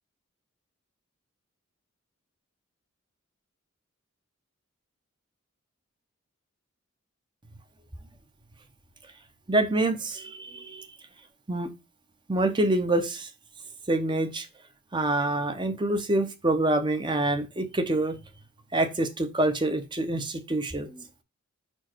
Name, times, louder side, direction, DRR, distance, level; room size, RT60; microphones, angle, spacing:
voice 1, 9.5-10.9 11.5-11.7 12.3-13.3 13.9-14.5 14.9-18.2 18.7-21.0, right 2 dB, 20° right, 0.8 m, -26 dB
5.2 x 4.5 x 4.5 m
head